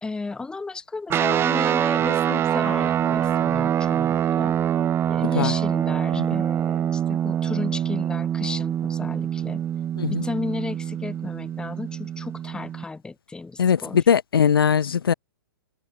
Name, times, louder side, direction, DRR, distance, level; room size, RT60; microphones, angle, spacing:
voice 1, 0.0-4.6 5.1-9.6 10.1-14.0, left 3 dB, 5° left, 1.4 m, -34 dB
sound 1, 1.1-12.8, right 10 dB, 20° right, 2.3 m, -24 dB
voice 2, 13.6-15.1, left 7 dB, 80° left, 1.3 m, -20 dB
open air
hypercardioid pair, 130°, 12 cm